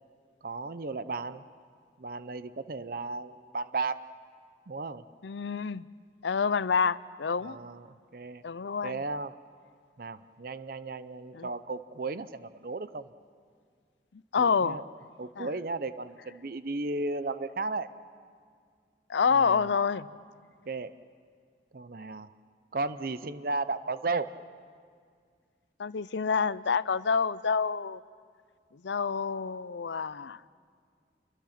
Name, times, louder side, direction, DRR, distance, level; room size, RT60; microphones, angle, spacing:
voice 1, 0.4-1.4 2.0-4.1 4.7-5.0 7.4-8.4 8.8-9.4 10.0-13.1 14.4-14.8 15.2-17.9 19.3-19.8 20.7-20.9 21.7-22.3 22.7-24.4, right 3 dB, 55° right, 13 dB, 0.6 m, -35 dB
voice 2, 5.2-5.8 6.2-7.6 8.4-9.0 11.3-11.5 14.3-14.8 15.4-15.5 19.1-20.1 25.8-28.0 28.8-30.4, left 5 dB, 90° left, 17 dB, 0.6 m, -27 dB
30.0 x 23.5 x 5.8 m, 2.1 s
head